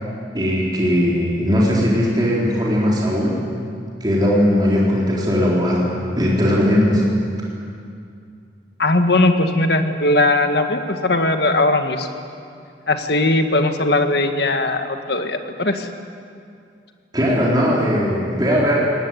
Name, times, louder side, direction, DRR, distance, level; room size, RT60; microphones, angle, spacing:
voice 1, 0.3-3.4 4.0-5.9 6.1-7.1 17.1-18.8, equal, 25° right, -5 dB, 4.1 m, -18 dB
voice 2, 8.8-12.1 12.9-15.9, left 2 dB, 60° left, 6 dB, 1.6 m, -19 dB
22.0 x 18.5 x 9.4 m, 2.4 s
head